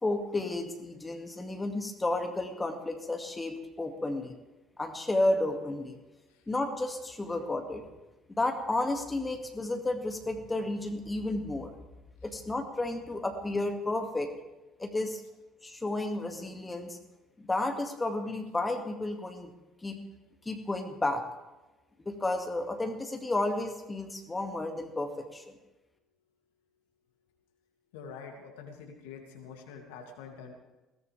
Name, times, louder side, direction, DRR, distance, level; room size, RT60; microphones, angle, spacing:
voice 1, 0.0-4.3 4.8-6.0 6.5-7.9 8.3-11.7 12.2-14.3 14.8-15.2 15.6-17.0 17.4-19.5 19.8-20.0 20.5-21.2 22.0-25.5, left 2 dB, 15° left, 4 dB, 2.2 m, -32 dB
voice 2, 27.9-30.5, left 6 dB, 65° left, 2 dB, 2.7 m, -45 dB
21.0 x 17.5 x 3.5 m, 1.0 s
figure-of-eight pair, 50°, 0 cm